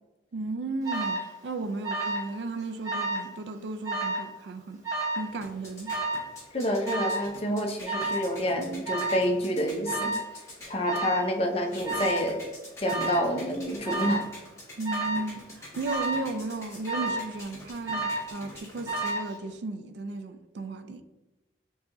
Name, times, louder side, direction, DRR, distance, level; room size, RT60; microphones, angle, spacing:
voice 1, 0.3-4.8 5.2-6.0 14.8-21.0, right 3 dB, 70° right, 0.4 m, -35 dB
Alarm, 0.8-1.3 1.8-2.3 2.6-3.3 3.8-4.3 4.8-5.3 5.9-6.3 6.9-7.3 7.9-8.3 8.9-9.3 9.9-10.3 10.9-11.3 11.8-12.3 12.8-13.3 13.8-14.3 14.8-15.3 15.8-16.3 16.9-17.3 17.9-18.3 18.9-19.3, right 2 dB, 20° right, 1.0 m, -30 dB
sound 1, 5.1-19.6, left 1 dB, 15° left, 1.4 m, -47 dB
voice 2, 6.5-10.2 10.7-12.5 12.8-14.3, equal, 30° left, 0.5 m, -28 dB
6.8 x 2.8 x 2.5 m
head